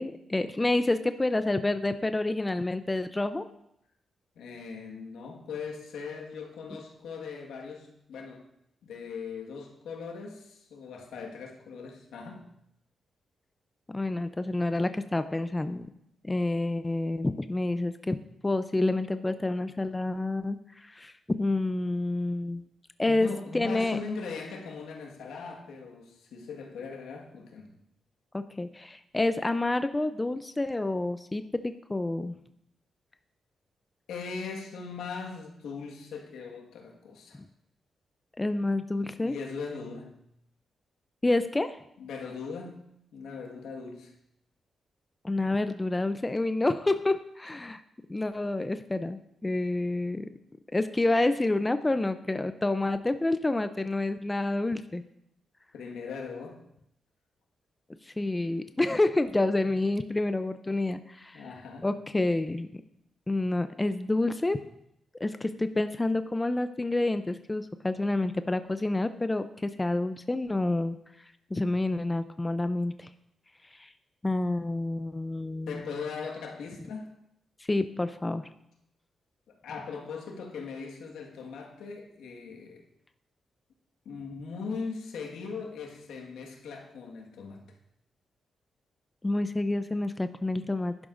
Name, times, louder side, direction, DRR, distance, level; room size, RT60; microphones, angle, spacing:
voice 1, 0.0-3.4 13.9-15.9 16.2-18.2 18.4-22.6 23.0-23.3 23.5-24.0 28.3-32.3 38.4-39.4 41.2-41.8 45.2-47.8 48.1-50.3 50.7-55.0 58.2-61.4 61.8-62.8 63.3-64.6 65.2-71.0 71.5-73.1 73.8-73.9 74.2-75.8 77.7-78.5 89.2-90.9, left 2 dB, 20° left, 10 dB, 0.5 m, -28 dB
voice 2, 4.4-8.4 8.8-12.4 23.1-27.7 34.1-37.4 39.2-40.2 42.0-42.8 43.1-44.1 55.7-56.6 59.7-59.8 61.3-61.9 75.7-77.1 79.5-82.8 84.1-87.6, left 5 dB, 90° left, 0 dB, 1.6 m, -39 dB
11.0 x 11.0 x 2.6 m, 0.77 s
cardioid pair, 70°, 0 cm